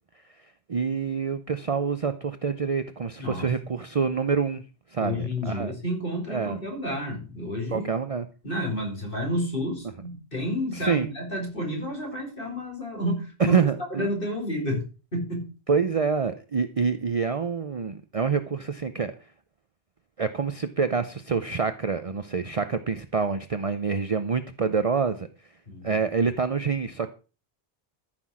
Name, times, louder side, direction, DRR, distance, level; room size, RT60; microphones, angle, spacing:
voice 1, 0.7-4.6 4.9-5.7 6.3-6.6 7.7-8.3 10.7-11.1 13.4-14.1 15.7-19.1 20.2-25.3 25.8-27.1, right 5 dB, 40° right, 10 dB, 0.7 m, -26 dB
voice 2, 3.2-3.5 5.0-7.9 8.4-13.6 13.9-15.5 25.7-25.9, equal, 60° left, 1 dB, 4.7 m, -30 dB
13.5 x 6.2 x 6.1 m, 0.35 s
omnidirectional pair, 1.0 m